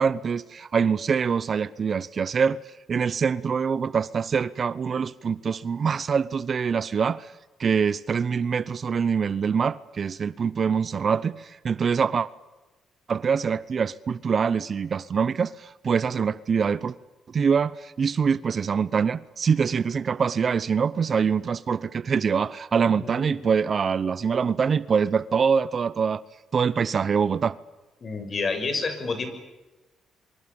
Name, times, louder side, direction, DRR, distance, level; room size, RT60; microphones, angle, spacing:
voice 1, 0.0-2.6 2.9-7.3 7.6-12.3 13.1-17.0 17.3-26.2 26.5-27.6, right 6 dB, 45° right, 0.9 m, -24 dB
voice 2, 22.9-23.5 28.0-29.3, left 4 dB, 40° left, 6.7 m, -29 dB
27.0 x 25.0 x 7.2 m
cardioid pair, 90°, 0 cm